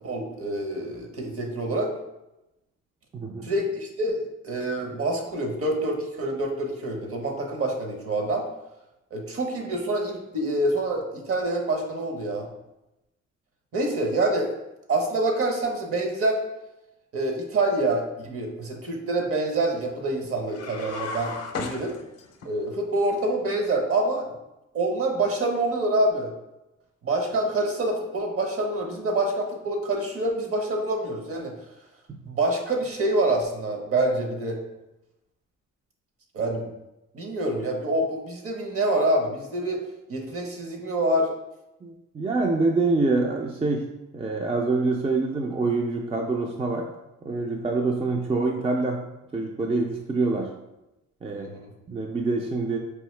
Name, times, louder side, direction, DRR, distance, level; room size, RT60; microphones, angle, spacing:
voice 1, 0.0-1.9 3.4-8.5 9.1-12.5 13.7-14.5 14.9-16.4 17.1-22.0 22.4-24.4 24.7-26.3 27.0-31.5 32.3-34.6 36.3-36.7 37.1-39.8 40.1-41.3 51.3-51.7, right 2 dB, 50° right, 2 dB, 0.9 m, -26 dB
voice 2, 3.1-3.5 32.1-32.2 41.8-43.9 44.1-46.9 47.2-49.0 49.3-50.5 51.2-51.5 51.9-52.8, right 3 dB, 20° right, 1 dB, 0.4 m, -25 dB
sound 1, 20.5-22.5, left 4 dB, 55° left, 0.6 m, -35 dB
4.6 x 2.7 x 3.2 m, 0.94 s
cardioid pair, 90°, 30 cm